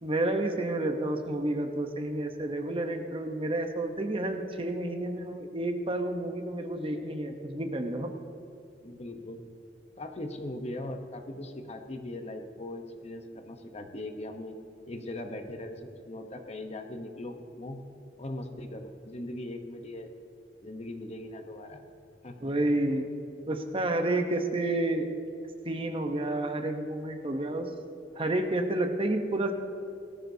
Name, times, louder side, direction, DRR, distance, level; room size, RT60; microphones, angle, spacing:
voice 1, 0.0-8.1 22.4-23.1 23.5-25.1 25.6-27.7 28.2-29.5, right 1 dB, 30° right, 5 dB, 0.9 m, -30 dB
voice 2, 8.8-9.4 10.0-14.5 14.9-17.8 18.2-20.1 20.6-21.8 22.2-22.5 22.8-22.9, left 1 dB, 35° left, 5 dB, 0.9 m, -40 dB
18.5 x 13.5 x 2.8 m, 2.6 s
head